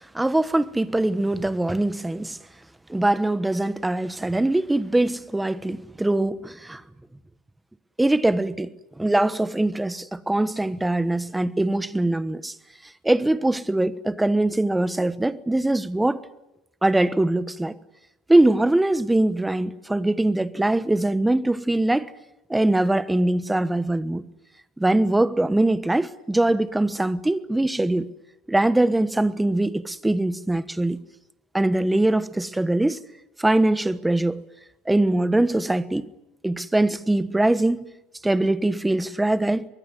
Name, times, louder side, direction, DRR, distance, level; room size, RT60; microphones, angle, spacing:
voice 1, 0.1-2.4 2.9-6.8 8.0-12.5 13.0-16.2 16.8-17.8 18.3-22.1 22.5-24.2 24.8-28.1 28.5-31.0 31.5-33.0 33.4-34.4 34.9-36.1 36.4-37.9 38.2-39.7, right 1 dB, 5° right, 1.2 m, -22 dB
24.0 x 22.5 x 9.5 m
supercardioid pair, 125°, 0 cm